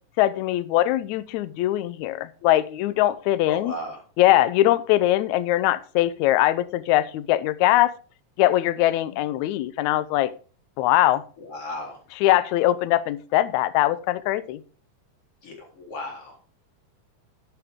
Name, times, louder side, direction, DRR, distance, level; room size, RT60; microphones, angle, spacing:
voice 1, 0.2-3.7 4.2-7.9 8.4-10.3 10.8-11.2 12.2-14.6, left 14 dB, 75° left, 14 dB, 1.7 m, -21 dB
voice 2, 3.5-4.0 9.1-9.2 11.4-12.0 15.4-16.4, left 1 dB, 40° left, -1 dB, 4.5 m, -35 dB
12.0 x 9.0 x 3.6 m, 0.38 s
omnidirectional pair, 4.0 m